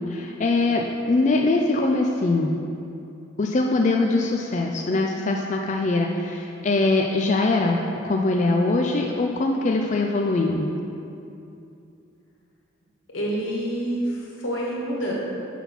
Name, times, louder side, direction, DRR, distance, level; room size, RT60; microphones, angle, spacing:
voice 1, 0.1-2.6 3.4-7.8 8.0-10.8, left 2 dB, 35° left, 1 dB, 0.3 m, -22 dB
voice 2, 13.1-15.1, equal, 85° left, -4 dB, 1.6 m, -27 dB
5.9 x 5.5 x 5.9 m, 2.7 s
head